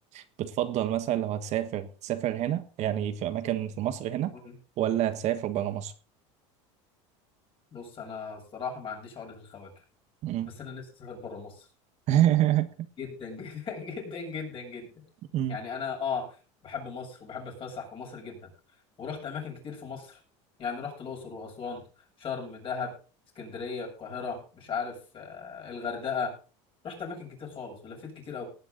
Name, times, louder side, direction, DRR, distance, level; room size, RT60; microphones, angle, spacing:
voice 1, 0.1-4.3 4.8-5.9 10.2-10.5 12.1-12.7 15.3-15.6, right 12 dB, 50° right, 1.5 m, -27 dB
voice 2, 7.7-9.7 10.6-11.6 13.0-14.9 15.5-16.3 16.6-18.5 19.0-20.2 20.6-21.8 22.2-22.9 23.4-26.3 26.8-28.5, left 5 dB, 35° left, 7.4 m, -37 dB
18.5 x 9.8 x 4.0 m
supercardioid pair, 130°, 15 cm